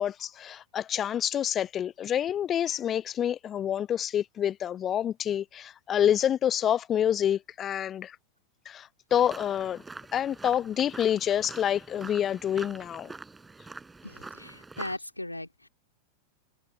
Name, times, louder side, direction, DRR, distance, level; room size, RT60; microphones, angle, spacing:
voice 1, 0.0-8.2 8.7-9.8 10.1-13.1, left 10 dB, 25° left, 0.4 m, -27 dB
sound 1, 9.1-15.0, right 3 dB, 10° right, 7.2 m, -45 dB
voice 2, 14.0-15.7, left 1 dB, 85° left, 2.7 m, -38 dB
figure-of-eight pair, 90°, 0 cm